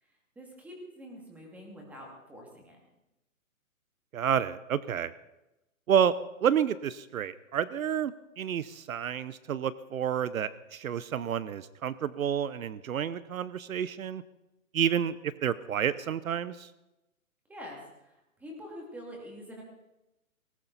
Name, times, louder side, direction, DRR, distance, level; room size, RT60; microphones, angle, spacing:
voice 1, 0.0-2.8 17.5-19.6, equal, 5° right, -1 dB, 2.3 m, -46 dB
voice 2, 4.1-5.1 5.9-6.1 6.4-14.2 14.7-15.2 15.4-16.7, right 9 dB, 70° right, 17 dB, 0.8 m, -29 dB
19.0 x 17.0 x 4.1 m, 0.96 s
hypercardioid pair, 160°, 43 cm